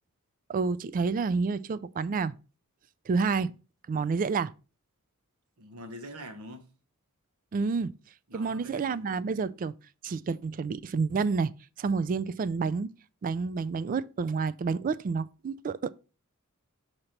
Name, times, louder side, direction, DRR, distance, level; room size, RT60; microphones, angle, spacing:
voice 1, 0.5-2.3 3.1-3.5 3.9-4.5 7.5-8.0 8.3-9.7 10.0-11.5 11.8-13.0 13.2-15.9, right 4 dB, 40° right, 0.3 m, -29 dB
voice 2, 5.6-6.7 8.3-9.2, equal, 80° right, 1.1 m, -45 dB
6.5 x 2.9 x 5.7 m
head